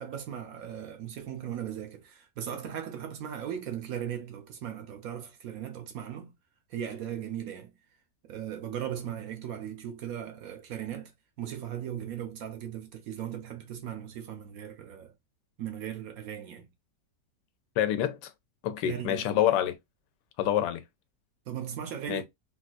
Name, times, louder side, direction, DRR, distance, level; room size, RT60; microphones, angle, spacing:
voice 1, 0.0-6.3 6.7-7.8 8.2-15.1 15.6-16.7 18.8-19.3 21.5-22.2, right 9 dB, 65° right, 1.0 m, -38 dB
voice 2, 17.8-18.3 18.6-19.8 20.4-20.8 22.1-22.2, left 11 dB, 85° left, 1.2 m, -27 dB
3.7 x 2.4 x 2.4 m
omnidirectional pair, 1.8 m